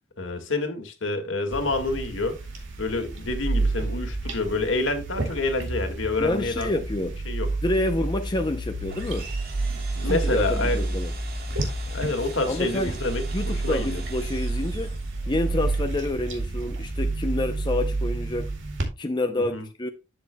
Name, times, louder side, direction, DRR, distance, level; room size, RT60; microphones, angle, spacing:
voice 1, 0.2-2.4 2.8-6.7 7.3-7.5 9.9-11.0 11.9-14.0 19.4-19.7, left 2 dB, 75° left, 1.8 m, -28 dB
sound 1, 1.5-18.9, right 2 dB, 70° right, 2.2 m, -30 dB
voice 2, 6.2-7.2 7.6-9.3 10.0-11.1 12.5-12.9 13.3-15.0 15.3-18.5 19.0-19.9, left 1 dB, 25° left, 0.6 m, -28 dB
sound 2, 8.9-15.4, right 4 dB, 50° right, 2.1 m, -43 dB
11.0 x 7.7 x 2.2 m
head